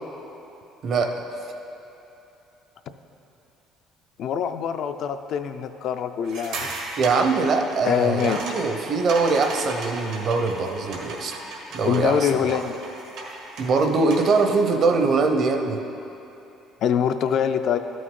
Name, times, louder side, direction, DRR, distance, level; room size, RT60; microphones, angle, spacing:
voice 1, 0.8-1.1 7.0-11.4 11.7-12.6 13.6-15.8, right 4 dB, 45° right, 4 dB, 0.7 m, -22 dB
voice 2, 4.2-6.7 7.9-8.4 11.9-12.8 16.8-17.8, left 8 dB, 55° left, 8 dB, 0.3 m, -24 dB
sound 1, 6.2-14.4, right 2 dB, 85° right, 1.6 m, -36 dB
12.0 x 6.2 x 3.7 m, 2.9 s
cardioid pair, 145°, 0 cm